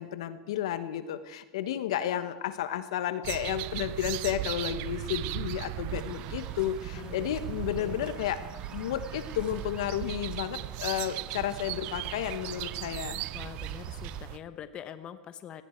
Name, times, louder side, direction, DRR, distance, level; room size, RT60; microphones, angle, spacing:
voice 1, 0.0-8.4 8.7-13.2, left 11 dB, 80° left, 12 dB, 1.2 m, -32 dB
sound 1, 3.2-14.4, right 19 dB, 55° right, 0.4 m, -37 dB
sound 2, 5.9-14.2, right 6 dB, 30° right, 1.7 m, -46 dB
voice 2, 7.8-8.1 13.3-15.6, left 9 dB, 35° left, 11 dB, 0.9 m, -44 dB
18.0 x 15.5 x 4.6 m, 1.4 s
supercardioid pair, 115°, 3 cm